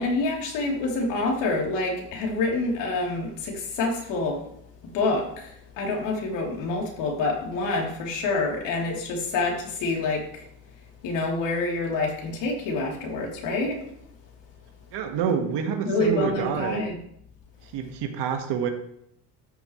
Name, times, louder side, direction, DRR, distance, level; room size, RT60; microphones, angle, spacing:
voice 1, 0.0-4.4 4.9-10.2 11.0-13.8 15.8-17.0, left 3 dB, 70° left, -1 dB, 3.5 m, -27 dB
voice 2, 14.9-16.9 17.6-18.7, right 7 dB, 65° right, 5 dB, 1.8 m, -27 dB
13.0 x 9.1 x 3.3 m, 0.72 s
cardioid pair, 150°, 44 cm